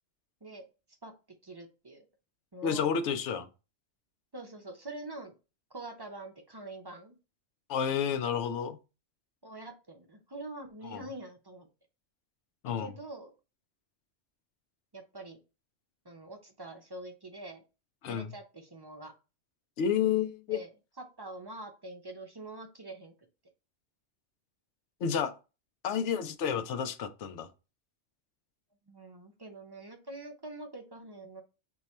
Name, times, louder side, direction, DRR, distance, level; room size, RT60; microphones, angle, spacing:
voice 1, 1.4-2.0 2.5-2.9 4.3-5.3 5.7-7.2 9.4-11.7 12.7-13.3 14.9-15.4 16.0-17.6 18.1-19.1 20.5-20.7 21.0-23.1 28.9-31.4, right 2 dB, 35° right, 0.4 m, -45 dB
voice 2, 2.6-3.5 7.7-8.8 10.8-11.0 12.6-12.9 18.0-18.3 19.8-20.6 25.0-25.3 25.8-27.5, left 7 dB, 85° left, 0.9 m, -30 dB
4.5 x 2.3 x 4.1 m
omnidirectional pair, 1.2 m